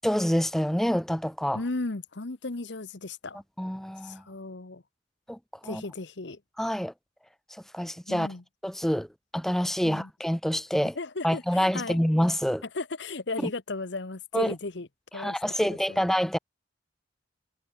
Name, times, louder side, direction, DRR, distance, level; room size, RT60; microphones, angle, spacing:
voice 1, 0.0-1.6 3.6-4.2 5.3-5.8 6.6-6.9 7.5-8.3 8.6-9.1 9.3-11.0 11.2-12.6 13.4-13.5 14.3-14.5 15.1-16.4, equal, ahead, 0.4 m, -27 dB
voice 2, 1.5-3.4 4.0-4.8 5.6-6.4 8.1-8.4 9.8-10.1 11.0-12.0 12.7-14.9 15.1-16.0, left 3 dB, 60° left, 1.1 m, -35 dB
head